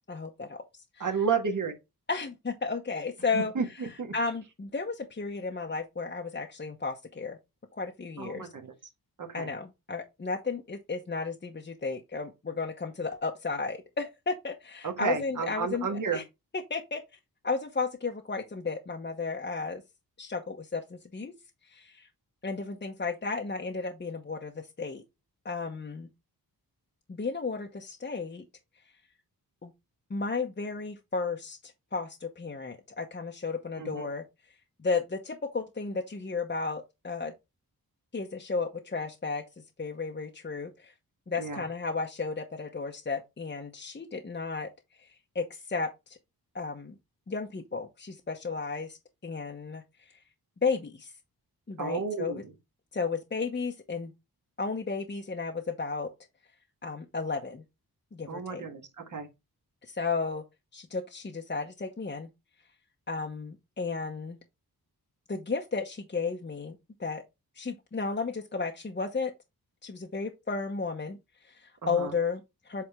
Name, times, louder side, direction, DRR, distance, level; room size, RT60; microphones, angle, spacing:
voice 1, 0.1-1.1 2.1-3.5 4.1-7.4 7.7-8.5 9.3-16.2 16.7-17.0 17.4-19.8 20.2-21.3 21.6-22.1 22.4-25.0 25.4-26.1 27.1-28.4 29.6-29.7 30.1-34.2 34.8-37.3 38.1-39.4 39.8-40.9 41.3-44.7 45.0-46.2 46.5-46.9 47.3-49.0 49.2-50.2 50.6-51.1 51.7-52.4 52.9-54.1 54.6-56.1 56.8-57.6 58.1-58.7 59.8-60.4 60.7-62.3 63.1-64.4 65.3-67.2 67.6-69.3 69.8-71.2 71.4-72.8, left 4 dB, 30° left, 0.9 m, -33 dB
voice 2, 1.0-1.7 3.3-4.1 8.2-8.7 9.2-9.5 14.8-16.2 33.8-34.1 41.4-41.6 51.8-52.5 58.3-59.3 71.8-72.1, right 5 dB, 55° right, 1.6 m, -32 dB
7.9 x 3.5 x 3.4 m
wide cardioid pair, 95°, 38 cm